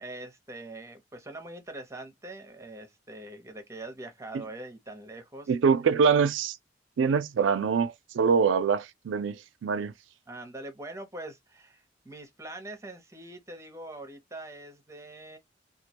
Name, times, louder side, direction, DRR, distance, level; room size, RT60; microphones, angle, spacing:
voice 1, 0.0-5.5 10.3-15.4, right 2 dB, 15° right, 0.7 m, -43 dB
voice 2, 5.5-6.6 7.0-9.9, right 6 dB, 85° right, 0.4 m, -24 dB
2.3 x 2.2 x 2.7 m
head